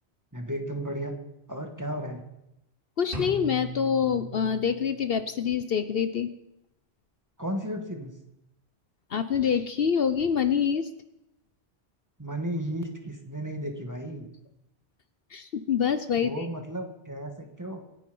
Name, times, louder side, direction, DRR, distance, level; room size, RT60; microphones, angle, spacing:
voice 1, 0.3-1.1 1.5-2.2 7.4-8.1 12.2-14.3 16.2-17.8, right 1 dB, 15° right, 3 dB, 2.1 m, -34 dB
voice 2, 3.0-6.3 9.1-10.9 15.3-16.5, left 7 dB, 60° left, 11 dB, 0.9 m, -26 dB
sound 1, 3.1-5.1, right 1 dB, 50° right, 3.9 m, -38 dB
26.5 x 9.5 x 5.5 m, 0.86 s
omnidirectional pair, 1.1 m